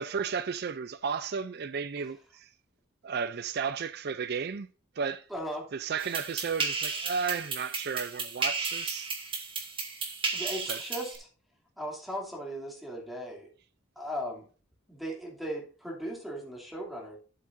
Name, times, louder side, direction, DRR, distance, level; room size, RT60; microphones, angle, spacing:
voice 1, 0.0-2.5 3.0-4.7 5.0-5.3 5.7-9.1 10.7-10.8, right 6 dB, 55° right, 0.4 m, -33 dB
voice 2, 5.3-5.7 10.3-11.3 11.8-13.5 14.0-14.5 14.9-17.2, equal, ahead, 2.8 m, -37 dB
sound 1, 6.0-11.2, right 4 dB, 25° right, 1.7 m, -34 dB
12.0 x 7.5 x 2.6 m
head